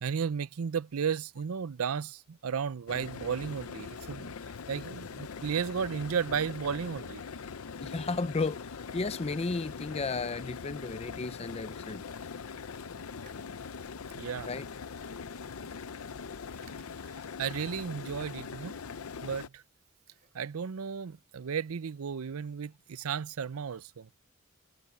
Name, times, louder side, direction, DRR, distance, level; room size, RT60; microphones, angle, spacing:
voice 1, 0.0-4.3 4.7-7.2 14.1-14.5 17.4-18.8 19.2-19.6 20.3-24.1, right 7 dB, 85° right, 0.5 m, -34 dB
sound 1, 2.9-19.5, left 5 dB, 80° left, 0.7 m, -42 dB
voice 2, 7.8-12.0 14.5-14.7, left 3 dB, 30° left, 0.5 m, -34 dB
sound 2, 12.1-13.7 14.8-15.3 15.8-15.9 16.1-16.3 16.6-17.2 17.9-18.4 18.9-19.7 20.1-20.5, right 7 dB, 40° right, 3.0 m, -65 dB
head